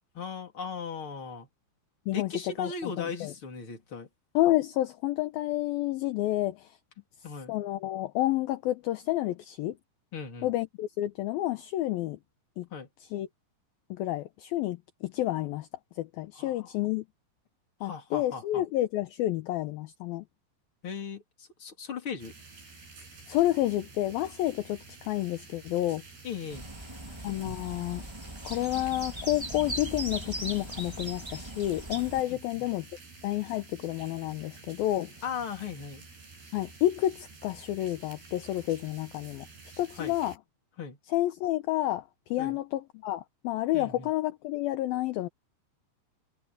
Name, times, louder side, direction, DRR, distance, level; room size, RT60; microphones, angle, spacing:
voice 1, 0.1-1.5 2.1-4.1 7.2-7.6 10.1-10.5 12.7-12.9 16.4-16.7 17.8-18.6 20.8-22.3 26.2-26.7 32.3-32.7 35.2-36.0 40.0-40.2 40.8-41.0 42.4-42.6 43.7-44.1, left 5 dB, 30° left, 3.6 m, -38 dB
voice 2, 2.6-3.3 4.3-6.8 7.5-9.8 10.4-12.2 12.6-12.7 13.1-13.3 13.9-15.7 16.0-17.1 17.8-20.3 23.3-26.0 27.2-28.0 28.4-32.9 33.2-35.1 36.5-39.5 39.8-40.3 41.1-45.3, left 15 dB, 70° left, 2.4 m, -30 dB
sound 1, 22.2-40.4, right 4 dB, 65° right, 9.3 m, -50 dB
sound 2, 26.5-32.2, right 1 dB, 15° right, 1.0 m, -39 dB
omnidirectional pair, 5.0 m